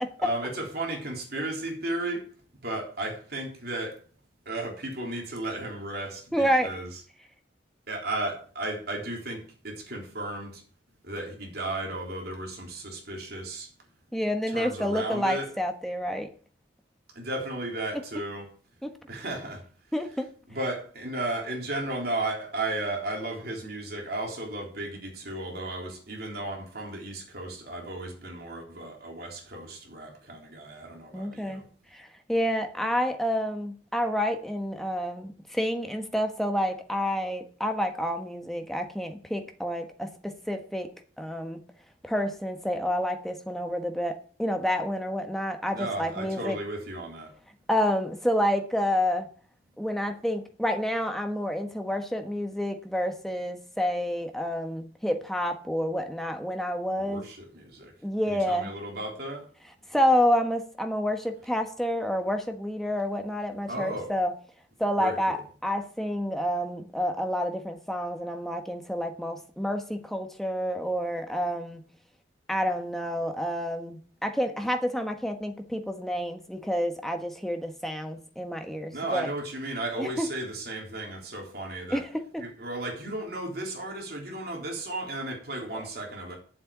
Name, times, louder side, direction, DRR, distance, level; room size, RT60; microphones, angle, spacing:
voice 1, 0.2-2.3 2.6-4.0 4.5-7.0 7.9-10.6 11.0-13.7 14.5-15.5 17.1-18.5 19.1-19.7 20.5-31.7 45.7-47.3 57.0-57.9 58.3-59.5 63.7-64.1 65.0-65.5 78.9-82.1 82.4-86.4, right 2 dB, 55° right, 3.7 m, -34 dB
voice 2, 6.3-6.7 14.1-16.3 18.8-18.9 19.9-20.3 31.1-31.6 31.9-40.9 41.2-41.6 42.0-46.6 47.7-49.3 49.8-57.2 58.0-58.7 59.9-64.3 64.8-65.4 65.6-71.8 72.5-79.3 80.0-80.2 81.9-82.4, equal, ahead, 1.2 m, -29 dB
8.8 x 7.8 x 8.7 m
head